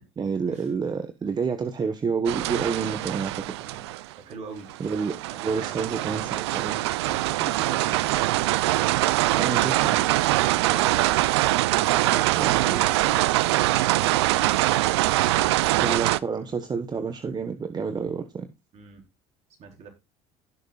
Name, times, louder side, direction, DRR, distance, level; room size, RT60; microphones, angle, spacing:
voice 1, 0.2-3.4 4.8-6.8 9.3-10.0 12.4-12.8 15.8-18.5, right 5 dB, 30° right, 1.2 m, -29 dB
sound 1, 2.3-4.1 4.7-16.2, right 17 dB, 90° right, 0.4 m, -23 dB
voice 2, 4.1-4.7 5.5-5.7 6.8-8.4 10.4-15.9 18.7-19.0 19.6-19.9, right 5 dB, 50° right, 4.4 m, -43 dB
17.0 x 6.6 x 2.4 m
supercardioid pair, 80°, 14 cm